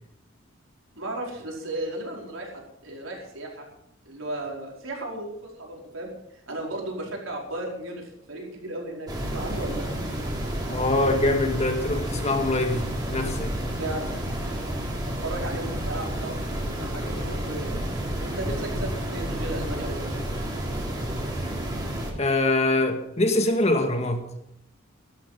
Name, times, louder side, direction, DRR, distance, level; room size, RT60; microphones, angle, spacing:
voice 1, 0.9-3.7 4.0-6.1 6.5-9.8 13.8-14.1 15.2-17.7 18.2-20.2, right 1 dB, 90° right, 4.9 m, -35 dB
sound 1, 9.1-22.1, right 1 dB, 20° right, 3.6 m, -30 dB
voice 2, 10.7-13.5 21.4-21.5 22.2-24.2, left 2 dB, 35° left, 1.9 m, -24 dB
15.0 x 12.0 x 5.8 m
head